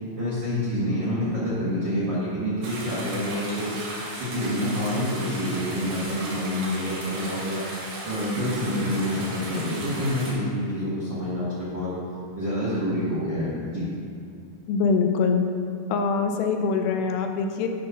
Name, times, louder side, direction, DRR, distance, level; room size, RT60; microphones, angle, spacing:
voice 1, 0.1-3.7 4.2-7.6 8.0-11.9 12.3-13.9, equal, 85° right, -9 dB, 1.0 m, -27 dB
sound 1, 2.6-10.3, right 1 dB, 70° right, 3.7 m, -36 dB
voice 2, 14.7-15.4 15.9-17.7, left 5 dB, 90° left, 5 dB, 2.8 m, -23 dB
11.0 x 3.8 x 5.4 m, 2.3 s
omnidirectional pair, 4.8 m